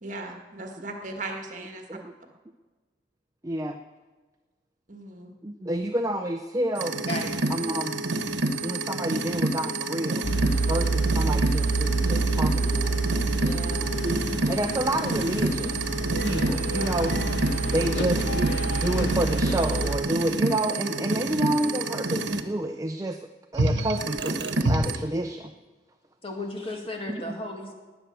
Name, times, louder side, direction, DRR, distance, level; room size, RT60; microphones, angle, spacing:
voice 1, 0.0-2.0 4.9-5.3 13.4-13.9, right 2 dB, 45° right, 3 dB, 1.8 m, -38 dB
voice 2, 3.4-3.8 5.4-7.0 7.5-7.9 8.6-10.3 10.7-13.0 14.0-23.2 23.5-25.5 27.1-27.3, right 1 dB, 20° right, 6 dB, 0.5 m, -29 dB
sound 1, 6.8-22.4 23.5-25.0, right 2 dB, 80° right, 1.1 m, -28 dB
sound 2, 10.2-20.0, right 2 dB, 85° left, 1.3 m, -27 dB
voice 3, 26.2-27.7, left 1 dB, 30° left, 2 dB, 2.2 m, -34 dB
18.5 x 9.1 x 6.8 m, 1.3 s
head